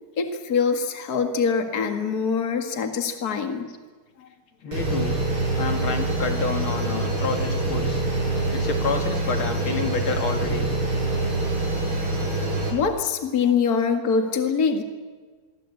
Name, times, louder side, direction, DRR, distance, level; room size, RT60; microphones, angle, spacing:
voice 1, 0.2-3.7 4.2-4.3 11.9-12.0 12.7-14.8, left 5 dB, 45° left, 5 dB, 2.4 m, -24 dB
voice 2, 4.6-5.1 5.5-8.0 8.5-10.7 12.2-12.3, left 5 dB, 70° left, 5 dB, 3.1 m, -29 dB
sound 1, 4.7-12.7, right 2 dB, 80° right, 8.1 m, -25 dB
25.5 x 23.5 x 8.5 m, 1.4 s
omnidirectional pair, 2.3 m